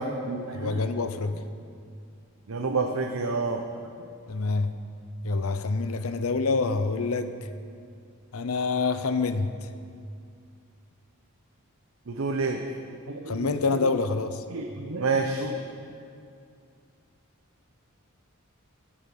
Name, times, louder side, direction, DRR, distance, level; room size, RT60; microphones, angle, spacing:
voice 1, 0.0-0.9 2.5-3.6 12.1-12.6 13.1-13.9 14.5-15.6, right 3 dB, 70° right, 3 dB, 0.8 m, -29 dB
voice 2, 0.5-1.4 4.3-4.8 5.2-7.4 8.3-9.7 13.3-14.4, left 3 dB, 75° left, 11 dB, 0.6 m, -27 dB
15.5 x 8.8 x 5.7 m, 2.4 s
head